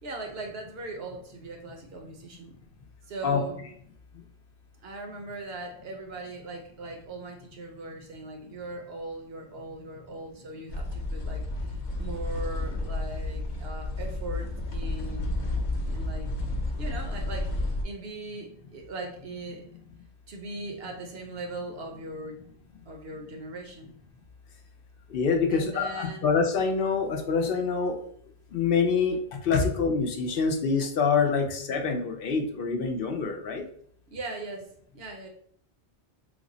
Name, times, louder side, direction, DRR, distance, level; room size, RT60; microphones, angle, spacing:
voice 1, 0.0-2.5 3.1-3.6 4.8-15.5 15.8-16.3 16.8-19.6 20.3-22.4 22.9-23.9 25.5-26.3 34.1-35.3, right 2 dB, 70° right, 2 dB, 0.9 m, -39 dB
sound 1, 10.7-17.8, left 2 dB, 90° left, 1.0 m, -31 dB
voice 2, 25.1-28.0 28.5-33.7, left 5 dB, 65° left, 5 dB, 0.7 m, -26 dB
3.3 x 2.0 x 3.7 m, 0.62 s
omnidirectional pair, 1.1 m